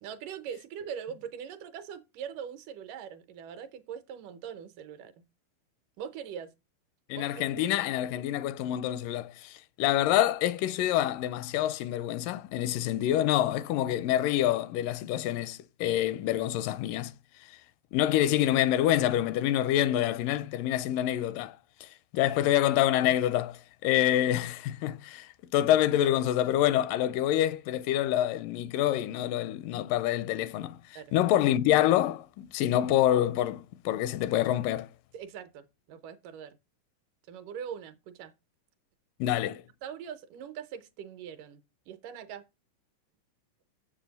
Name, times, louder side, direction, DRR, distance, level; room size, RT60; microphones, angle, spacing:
voice 1, 0.0-5.1 6.0-6.5 7.1-7.3 31.0-31.1 35.1-36.6 37.3-38.3 39.8-41.6 41.9-42.4, right 8 dB, 80° right, 2.4 m, -41 dB
voice 2, 7.1-17.1 17.9-21.6 21.8-30.8 31.1-34.9 39.2-39.6, left 12 dB, 85° left, 2.2 m, -27 dB
7.5 x 7.1 x 4.0 m
omnidirectional pair, 3.8 m